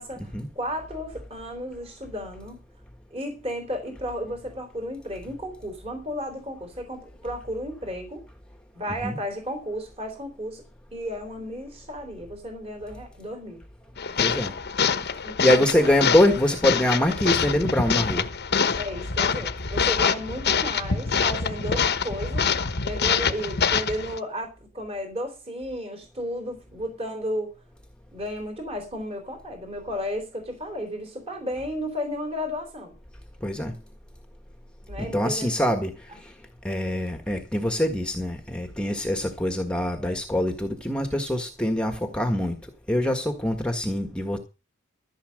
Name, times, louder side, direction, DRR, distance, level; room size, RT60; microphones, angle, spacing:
voice 1, 0.0-2.6 3.1-8.2 8.7-10.6 10.9-13.6 15.2-15.8 18.8-22.5 22.8-27.6 28.1-32.9 34.9-35.7, equal, 30° right, 3.5 m, -33 dB
sound 1, 14.0-24.2, left 6 dB, 50° left, 1.2 m, -25 dB
voice 2, 14.2-14.5 15.4-18.3 33.4-33.7 35.0-35.9 36.2-36.3 36.6-42.5 42.9-44.4, left 1 dB, 5° left, 1.6 m, -24 dB
14.5 x 7.2 x 6.5 m
head